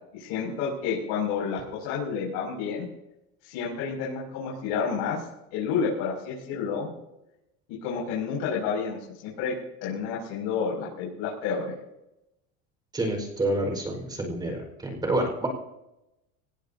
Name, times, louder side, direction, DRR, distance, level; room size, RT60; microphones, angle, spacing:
voice 1, 0.1-2.9 3.4-5.2 5.5-6.9 7.7-9.5 9.8-11.7, left 6 dB, 70° left, -4 dB, 6.8 m, -30 dB
voice 2, 12.9-15.5, right 1 dB, 10° right, 2 dB, 5.1 m, -28 dB
25.5 x 19.5 x 2.9 m, 0.90 s
cardioid pair, 170°, 34 cm